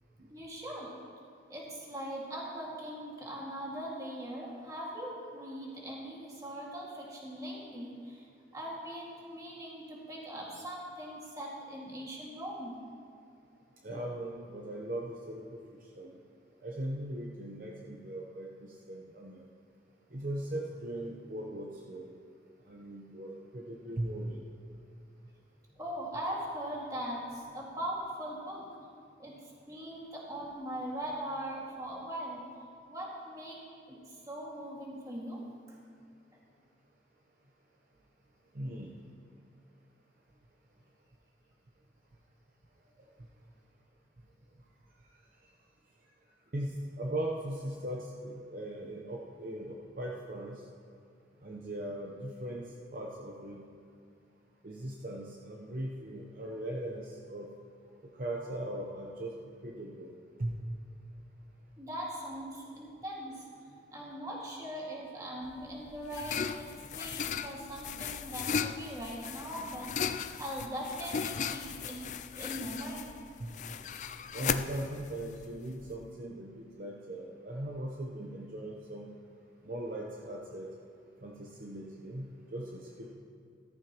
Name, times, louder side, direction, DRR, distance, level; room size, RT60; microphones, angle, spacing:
voice 1, 0.3-0.9 1.5-8.2 8.5-12.8 25.8-28.7 29.2-32.5 32.9-33.6 33.9-35.4 61.8-73.2, equal, 20° right, -4 dB, 2.0 m, -40 dB
voice 2, 13.8-15.5 16.0-16.1 16.6-19.4 20.1-22.1 22.7-24.4 38.5-38.9 46.5-50.6 51.4-52.6 52.9-53.6 54.6-57.5 58.2-60.1 60.4-60.6 73.4-73.5 74.3-79.1 79.7-80.7 81.2-83.1, right 1 dB, 50° right, -2 dB, 0.8 m, -39 dB
sound 1, 65.5-76.1, left 7 dB, 40° left, 0.3 m, -37 dB
14.0 x 14.0 x 3.0 m, 2.4 s
head